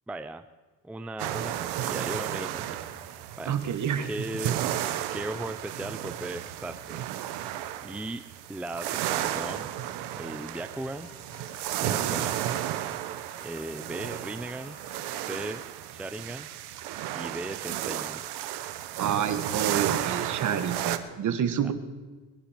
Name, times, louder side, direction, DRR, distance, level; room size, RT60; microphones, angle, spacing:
voice 1, 0.1-0.4 0.8-3.5 4.1-4.6 5.1-7.0 7.8-9.7 10.1-11.1 11.8-12.4 13.4-14.8 15.3-16.5 17.1-18.2 21.6-21.7, right 2 dB, 5° right, 9 dB, 0.5 m, -37 dB
sound 1, 1.2-21.0, right 12 dB, 80° right, 1.0 m, -33 dB
voice 2, 3.5-4.1 11.8-12.2 19.0-21.7, right 8 dB, 50° right, 10 dB, 1.4 m, -28 dB
sound 2, 10.8-16.2, left 4 dB, 50° left, 5.8 m, -55 dB
21.0 x 10.5 x 5.0 m, 1.3 s
cardioid pair, 115°, 39 cm